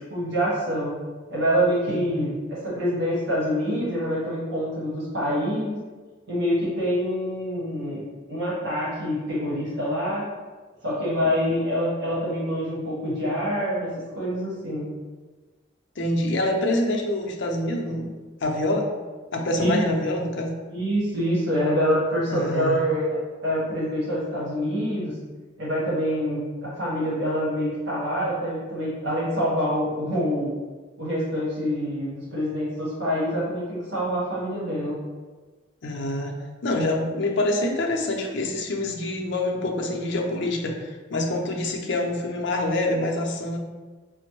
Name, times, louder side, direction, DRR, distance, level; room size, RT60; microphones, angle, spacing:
voice 1, 0.1-0.9 1.3-5.8 6.3-10.3 10.8-14.9 19.6-19.8 20.7-25.1 25.6-30.5 31.0-34.9, equal, 60° right, -7 dB, 1.3 m, -26 dB
voice 2, 1.9-2.4 11.2-11.3 16.0-18.9 19.3-20.6 22.3-22.8 35.8-36.4 36.6-43.6, left 1 dB, 65° left, 1 dB, 0.5 m, -26 dB
5.0 x 2.0 x 3.0 m, 1.3 s
head